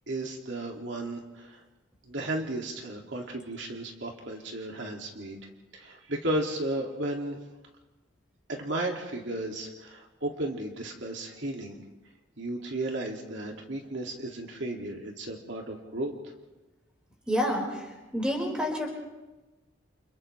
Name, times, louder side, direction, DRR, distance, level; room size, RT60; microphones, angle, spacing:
voice 1, 0.1-1.6 2.0-7.4 8.5-11.8 12.4-16.1, right 1 dB, 70° right, 0 dB, 2.5 m, -34 dB
voice 2, 17.3-18.9, equal, 5° right, -1 dB, 4.9 m, -29 dB
29.5 x 28.0 x 3.3 m, 1.1 s
head